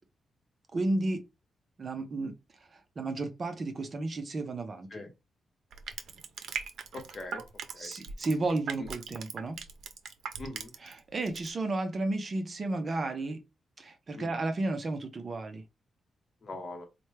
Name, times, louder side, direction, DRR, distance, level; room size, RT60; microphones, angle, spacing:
voice 1, 0.7-1.2 1.8-2.3 2.6-4.9 7.8-9.6 10.8-13.4 13.8-15.6, right 2 dB, 35° right, 0.5 m, -33 dB
Crushing, 5.7-11.0 11.3-11.5, right 6 dB, 85° right, 0.5 m, -39 dB
voice 2, 6.9-7.4 7.7-7.9 8.8-8.9 10.4-10.7 14.1-14.3 16.4-16.9, left 2 dB, 35° left, 0.9 m, -41 dB
4.3 x 2.1 x 3.1 m
wide cardioid pair, 170°, 0 cm